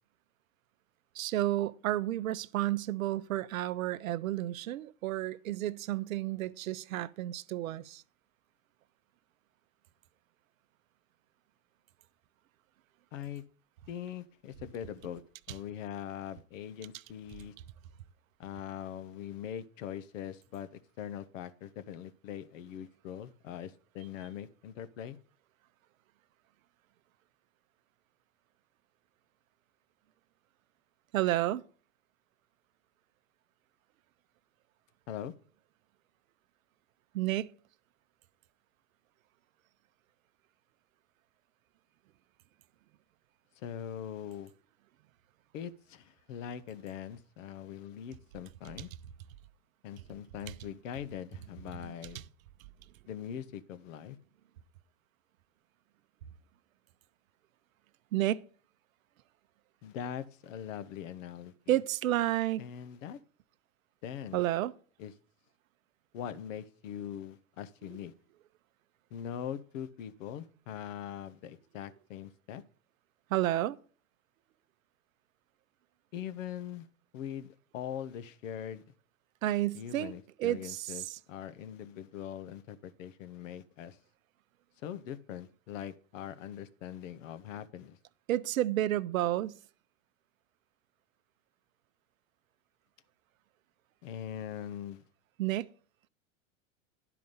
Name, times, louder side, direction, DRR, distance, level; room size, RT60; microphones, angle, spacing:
voice 1, 1.1-8.0 31.1-31.6 37.1-37.5 58.1-58.4 61.7-62.6 64.3-64.7 73.3-73.8 79.4-80.1 80.4-81.2 88.3-89.6 95.4-95.7, right 14 dB, 80° right, 0.7 m, -31 dB
voice 2, 13.1-13.4 13.9-15.2 15.5-17.5 18.4-20.7 21.0-25.2 35.1-35.3 43.6-44.5 45.5-48.9 49.8-52.2 53.1-54.2 59.8-61.7 62.6-63.2 64.0-64.4 65.0-65.1 66.1-68.1 69.1-72.6 76.1-76.9 77.1-78.8 79.7-84.0 84.8-88.0 94.0-95.0, left 9 dB, 70° left, 1.0 m, -42 dB
11.0 x 4.9 x 5.4 m
hypercardioid pair, 100°, 40 cm